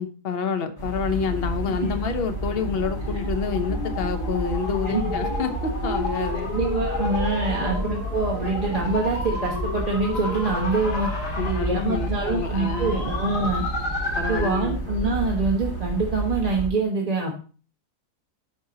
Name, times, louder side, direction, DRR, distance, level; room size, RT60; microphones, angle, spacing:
voice 1, 0.0-6.5 7.5-7.7 11.4-13.1 14.1-14.8, left 6 dB, 45° left, 7 dB, 0.9 m, -28 dB
sound 1, 0.8-16.7, right 2 dB, 15° left, 1.8 m, -31 dB
sound 2, 2.0-14.7, left 3 dB, 85° left, 2.5 m, -32 dB
voice 2, 6.5-11.1 11.4-13.6 14.3-17.4, right 3 dB, 25° right, -1 dB, 1.1 m, -25 dB
11.0 x 4.5 x 2.8 m, 0.37 s
omnidirectional pair, 1.7 m